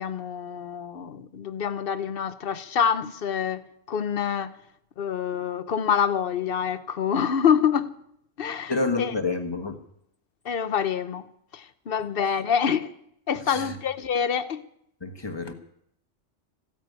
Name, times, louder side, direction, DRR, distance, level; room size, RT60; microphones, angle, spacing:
voice 1, 0.0-4.6 5.0-7.9 8.4-8.7 9.0-9.1 10.4-11.3 11.5-12.9 13.3-14.6, left 7 dB, 55° left, 1.0 m, -26 dB
voice 2, 8.7-9.8 13.5-13.8 15.0-15.5, left 3 dB, 20° left, 1.4 m, -28 dB
15.0 x 9.0 x 9.5 m
omnidirectional pair, 1.2 m